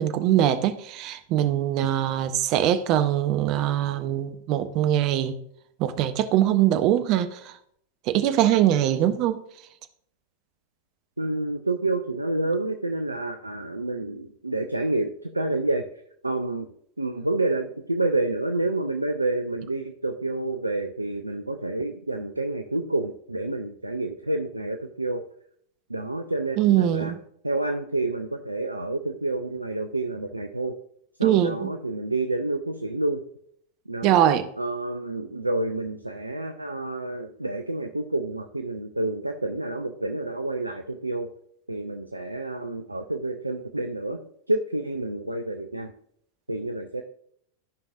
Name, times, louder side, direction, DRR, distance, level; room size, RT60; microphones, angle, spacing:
voice 1, 0.0-5.4 5.8-7.5 8.1-9.4 26.6-27.2 31.2-31.7 34.0-34.4, right 11 dB, 40° right, 0.7 m, -22 dB
voice 2, 11.2-15.8 16.2-16.7 17.0-25.2 25.9-27.1 27.4-30.8 31.2-33.2 33.9-34.2 34.6-41.3 41.7-44.2 44.5-45.9 46.5-47.0, right 2 dB, 85° right, 0.5 m, -28 dB
13.0 x 5.4 x 2.5 m
figure-of-eight pair, 90°, 0 cm